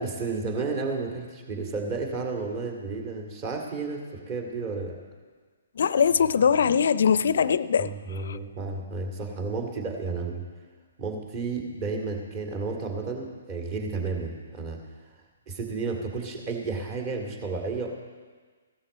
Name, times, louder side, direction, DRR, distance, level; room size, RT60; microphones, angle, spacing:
voice 1, 0.0-5.0 7.8-10.4 11.0-14.8 15.5-17.9, right 4 dB, 30° right, 3 dB, 2.3 m, -32 dB
voice 2, 5.8-8.4, left 7 dB, 65° left, 17 dB, 0.4 m, -22 dB
16.0 x 13.0 x 4.3 m, 1.5 s
figure-of-eight pair, 130°, 0 cm